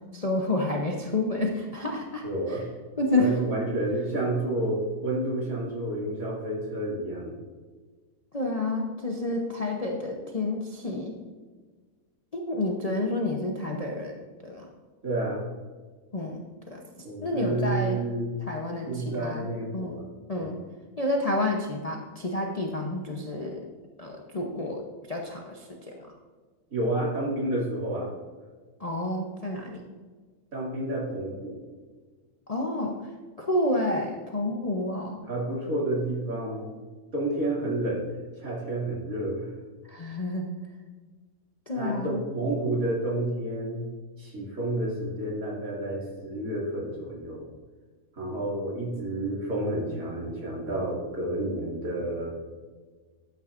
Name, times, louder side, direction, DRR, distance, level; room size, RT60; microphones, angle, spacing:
voice 1, 0.1-2.6 3.0-3.5 8.3-11.2 12.3-14.2 14.4-14.7 16.1-16.8 17.2-18.0 18.5-19.5 19.7-20.0 20.3-20.6 21.0-23.6 24.0-24.8 25.1-26.1 28.8-29.8 32.5-33.0 33.4-35.2 39.9-40.5 41.7-42.2, left 2 dB, 35° left, 0 dB, 0.7 m, -29 dB
voice 2, 2.2-2.6 3.1-7.4 15.0-15.5 17.0-18.3 18.9-20.1 20.4-20.6 26.7-28.1 30.5-31.6 35.3-36.7 37.1-38.1 38.4-39.5 41.7-43.9 44.2-47.5 48.1-52.3, right 1 dB, 60° right, -4 dB, 2.9 m, -30 dB
12.5 x 8.7 x 2.5 m, 1.4 s
omnidirectional pair, 1.7 m